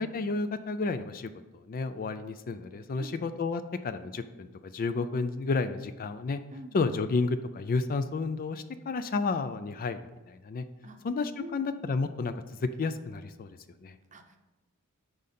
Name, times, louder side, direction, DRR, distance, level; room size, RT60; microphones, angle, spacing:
voice 1, 0.0-6.4 6.7-10.0 10.3-10.7 11.0-12.3 12.6-13.5 13.8-14.0, left 3 dB, 40° left, 11 dB, 0.4 m, -31 dB
voice 2, 2.9-3.2 6.5-6.8 10.8-11.0 11.4-11.7 14.1-14.4, right 1 dB, 35° right, 6 dB, 0.7 m, -45 dB
8.6 x 5.2 x 4.2 m, 1.2 s
head